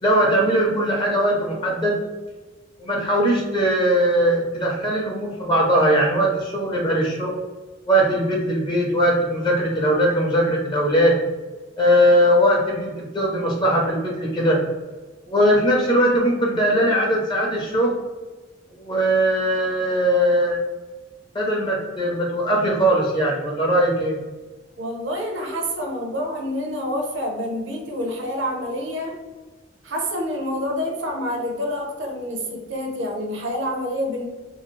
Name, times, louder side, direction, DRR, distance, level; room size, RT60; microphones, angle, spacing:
voice 1, 0.0-2.0 2.8-7.3 7.9-11.2 11.8-14.6 15.3-18.0 18.7-20.6 21.3-24.2, equal, 25° left, -2 dB, 0.5 m, -20 dB
voice 2, 24.8-29.2 29.8-34.3, equal, 70° right, 2 dB, 0.7 m, -27 dB
2.7 x 2.3 x 3.0 m, 1.2 s
head